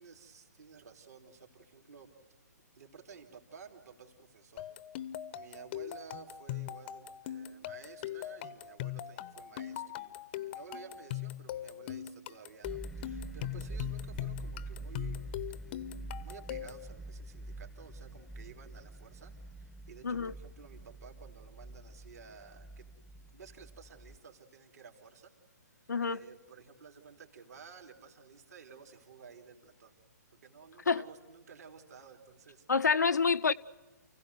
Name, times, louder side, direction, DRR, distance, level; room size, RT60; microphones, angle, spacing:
voice 1, 0.0-2.1 2.7-4.7 5.3-10.1 10.4-15.2 15.6-15.9 16.2-25.3 25.7-30.0 30.3-32.6, right 6 dB, 65° right, 3.4 m, -53 dB
sound 1, 4.6-16.9, left 12 dB, 35° left, 0.8 m, -41 dB
sound 2, 12.6-24.2, right 2 dB, ahead, 0.9 m, -45 dB
voice 2, 25.9-26.2 30.9-31.0 32.7-33.5, left 5 dB, 75° left, 0.7 m, -27 dB
29.0 x 16.0 x 9.6 m
figure-of-eight pair, 130°, 9 cm